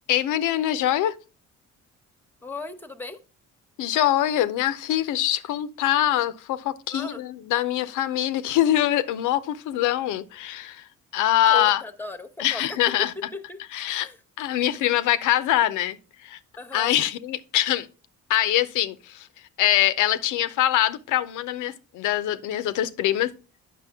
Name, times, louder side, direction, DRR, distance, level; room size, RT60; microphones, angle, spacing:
voice 1, 0.1-1.1 3.8-10.8 11.1-11.8 12.4-13.1 13.7-14.1 14.4-16.0 16.2-16.4 16.7-17.9 18.3-19.3 19.6-23.3, left 12 dB, 90° left, 0.6 m, -23 dB
voice 2, 2.4-3.2 6.9-7.2 11.5-12.8 13.3-13.6 14.0-14.2 16.6-16.9, left 2 dB, 5° left, 0.9 m, -36 dB
8.4 x 6.2 x 3.5 m
cardioid pair, 90°, 30 cm